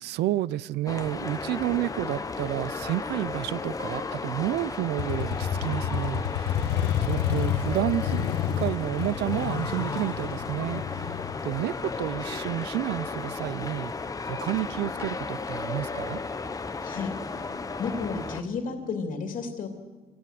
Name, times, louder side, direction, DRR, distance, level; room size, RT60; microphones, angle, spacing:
voice 1, 0.0-11.2 11.4-16.2, right 15 dB, 80° right, 0.6 m, -31 dB
sound 1, 0.9-18.4, left 4 dB, 20° left, 1.0 m, -34 dB
Motorcycle, 5.0-12.6, left 9 dB, 80° left, 1.6 m, -30 dB
voice 2, 16.8-17.5 17.8-19.7, left 4 dB, 55° left, 2.9 m, -32 dB
26.5 x 18.0 x 7.7 m
cardioid pair, 110°, 17 cm